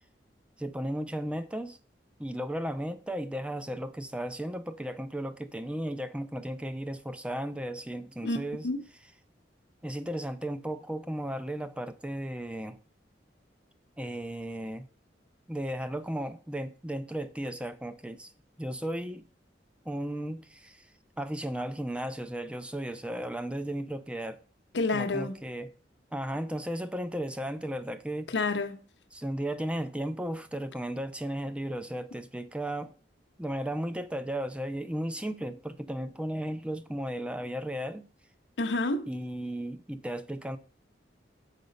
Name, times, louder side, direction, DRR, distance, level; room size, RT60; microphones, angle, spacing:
voice 1, 0.6-1.8 2.2-8.7 9.8-12.8 14.0-14.9 15.5-18.3 18.6-19.3 19.9-20.8 21.2-24.4 24.9-25.7 26.1-28.3 29.1-32.9 33.4-38.1 39.1-40.6, right 1 dB, 5° right, 0.4 m, -35 dB
voice 2, 8.2-8.8 24.7-25.4 28.3-28.8 38.6-39.1, left 2 dB, 75° left, 0.8 m, -29 dB
6.6 x 4.8 x 5.2 m
head